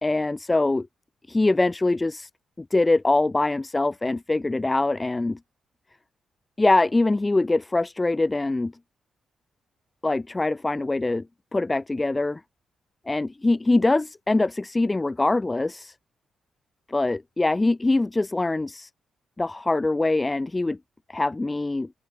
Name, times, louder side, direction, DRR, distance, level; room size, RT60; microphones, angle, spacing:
voice 1, 0.0-0.9 1.3-2.3 2.6-5.4 6.6-8.7 10.0-11.3 11.5-12.4 13.1-15.9 16.9-18.9 19.4-20.8 21.1-21.9, left 2 dB, 15° left, 0.6 m, -23 dB
open air
wide cardioid pair, 155°, 0 cm